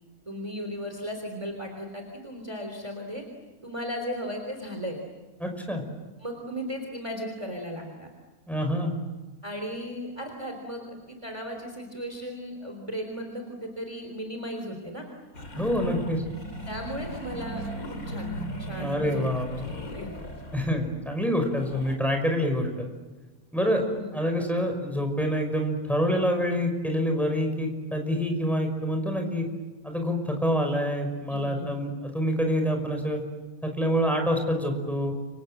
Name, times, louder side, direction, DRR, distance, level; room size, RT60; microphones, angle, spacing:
voice 1, 0.3-3.2 3.6-5.0 6.2-8.1 9.4-15.1 16.7-19.2 19.9-20.2 23.6-24.1 31.3-31.8, equal, 20° right, 3 dB, 3.6 m, -36 dB
voice 2, 5.4-5.8 8.5-9.0 15.6-16.2 18.8-19.6 20.5-22.9 23.5-23.8 24.1-29.5 29.8-33.2 33.6-35.1, equal, ahead, 4 dB, 5.6 m, -26 dB
sound 1, 15.3-21.1 21.4-22.0, equal, 70° left, 3.3 m, -37 dB
29.5 x 25.5 x 7.8 m, 1.2 s
omnidirectional pair, 1.5 m